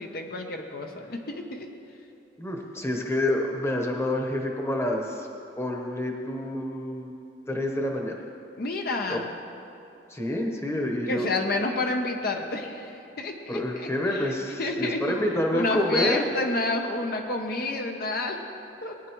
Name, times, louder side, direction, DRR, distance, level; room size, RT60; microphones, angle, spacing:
voice 1, 0.0-1.7 8.6-9.3 11.1-14.3 14.6-15.1 15.5-18.4 18.8-19.0, left 2 dB, 60° left, 3 dB, 0.8 m, -29 dB
voice 2, 2.4-5.3 5.6-7.1 7.5-8.2 9.1-9.2 10.1-11.3 13.5-16.2, left 1 dB, 15° left, 1 dB, 1.0 m, -28 dB
19.0 x 9.6 x 3.1 m, 2.8 s
head